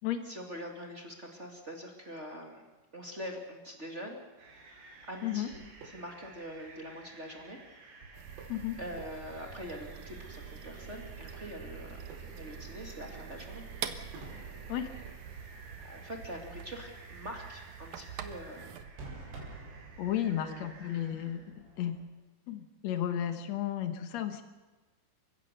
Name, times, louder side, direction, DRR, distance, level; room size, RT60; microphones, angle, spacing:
voice 1, 0.2-2.6 2.9-4.2 5.0-7.6 8.8-12.0 12.3-13.6 15.8-18.7 20.2-20.7, equal, 35° right, 1 dB, 1.1 m, -44 dB
sound 1, 4.4-22.1, right 3 dB, 90° right, 7.2 m, -51 dB
sound 2, 8.1-18.8, right 8 dB, 70° right, 1.8 m, -45 dB
voice 2, 20.0-22.0 22.5-24.4, left 11 dB, 80° left, 8 dB, 1.5 m, -33 dB
30.0 x 15.5 x 6.7 m, 1.2 s
omnidirectional pair, 5.1 m